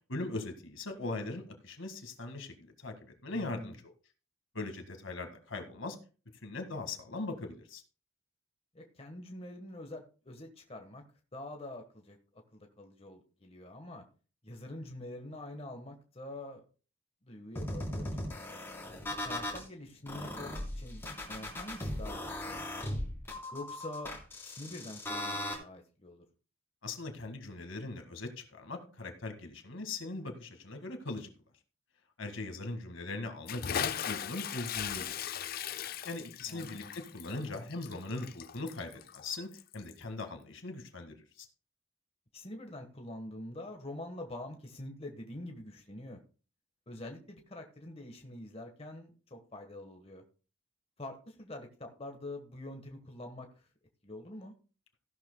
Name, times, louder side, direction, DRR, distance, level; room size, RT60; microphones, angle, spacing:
voice 1, 0.1-3.8 4.5-6.0 6.4-7.8 26.8-31.3 32.2-35.1 36.0-41.5, left 2 dB, 65° left, 6 dB, 1.8 m, -40 dB
voice 2, 3.3-3.8 8.7-11.0 11.3-14.0 14.4-16.6 17.2-18.6 19.2-22.9 23.5-24.1 24.4-26.2 36.5-36.9 42.3-46.2 46.9-50.2 51.0-53.7 54.0-54.5, left 1 dB, 30° left, 3 dB, 1.3 m, -45 dB
sound 1, 17.6-19.6 20.1-25.6, left 1 dB, 10° left, 3.5 m, -38 dB
Bathtub (filling or washing) / Splash splatter, 33.5-40.0, left 9 dB, 45° left, 0.4 m, -38 dB
15.0 x 11.5 x 2.2 m, 0.36 s
head